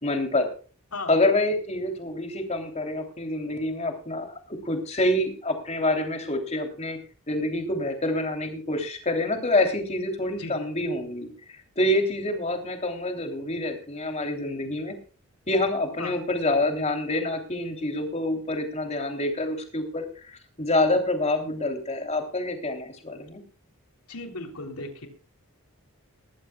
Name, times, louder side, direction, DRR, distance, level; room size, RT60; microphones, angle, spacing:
voice 1, 0.0-0.5 1.1-7.0 7.3-15.0 15.5-23.4, left 1 dB, 30° left, 5 dB, 3.2 m, -27 dB
voice 2, 24.1-25.1, left 2 dB, 85° left, 6 dB, 3.4 m, -36 dB
20.5 x 14.5 x 2.3 m, 0.38 s
head